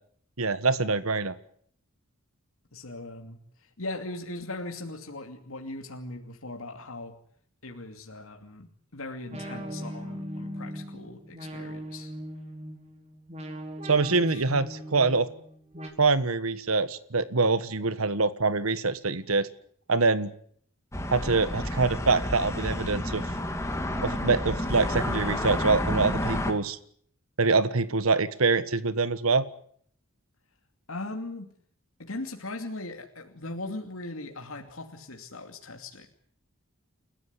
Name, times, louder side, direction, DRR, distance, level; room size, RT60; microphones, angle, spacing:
voice 1, 0.4-1.3 13.9-15.3 16.0-19.5 19.9-20.3 21.1-23.2 24.0-26.8 27.4-29.4, right 3 dB, 90° right, 14 dB, 1.5 m, -25 dB
voice 2, 2.7-7.1 7.6-12.1 14.1-14.7 30.9-31.5 32.0-36.1, left 2 dB, 80° left, 3 dB, 2.7 m, -39 dB
sound 1, 9.3-15.9, equal, 30° right, 4.5 m, -39 dB
Day Traffic - City Life, 20.9-26.5, left 1 dB, 15° left, 2.5 m, -30 dB
29.5 x 15.0 x 9.8 m, 0.63 s
head